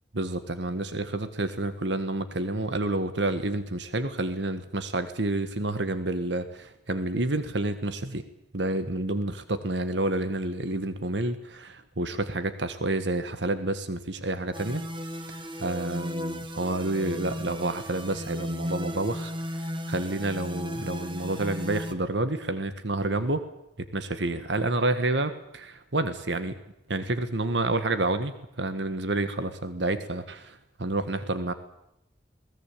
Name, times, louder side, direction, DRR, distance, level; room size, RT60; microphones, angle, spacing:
voice 1, 0.1-8.2 8.5-14.8 15.3-23.4 23.8-26.6 26.9-31.5, right 2 dB, 85° right, 10 dB, 1.7 m, -29 dB
sound 1, 14.5-21.9, equal, 30° right, 1.8 m, -35 dB
21.5 x 19.0 x 8.7 m, 0.82 s
head